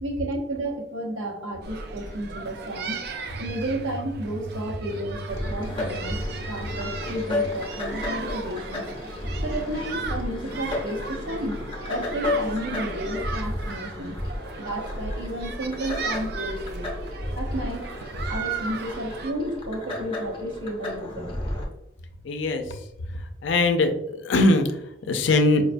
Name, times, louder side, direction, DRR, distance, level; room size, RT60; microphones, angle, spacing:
voice 1, 0.0-3.0 3.3-8.8 9.4-11.6 11.9-14.1 14.6-16.9 17.3-17.9 18.3-21.3, right 1 dB, 80° right, 1 dB, 0.8 m, -32 dB
sound 1, 1.6-19.3, right 4 dB, 55° right, 0.4 m, -36 dB
sound 2, 5.3-21.7, left 2 dB, 25° left, 0.6 m, -33 dB
voice 2, 22.2-22.6 23.4-24.7 25.0-25.6, left 2 dB, 70° left, 6 dB, 0.4 m, -21 dB
4.6 x 2.2 x 2.5 m, 0.83 s
head